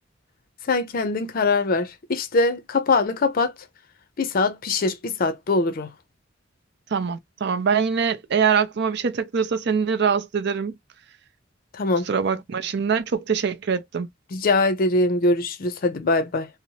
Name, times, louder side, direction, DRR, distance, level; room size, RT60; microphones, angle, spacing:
voice 1, 0.7-3.5 4.2-5.9 11.7-12.1 14.3-16.5, left 3 dB, 50° left, 0.5 m, -22 dB
voice 2, 6.9-10.8 12.1-14.1, right 6 dB, 60° right, 0.5 m, -23 dB
2.8 x 2.0 x 2.7 m
head